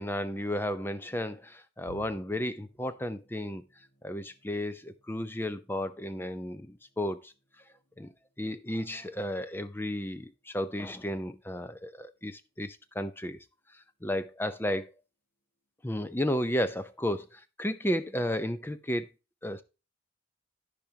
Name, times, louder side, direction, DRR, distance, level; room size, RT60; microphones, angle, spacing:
voice 1, 0.0-3.6 4.0-7.3 8.0-8.1 8.4-13.4 14.0-14.9 15.8-19.1 19.4-19.6, equal, 10° left, 0.6 m, -33 dB
sound 1, 1.9-13.7 14.1-14.4 14.7-14.9 15.8-16.3, right 4 dB, 75° left, 2.0 m, -63 dB
14.0 x 5.1 x 2.8 m
head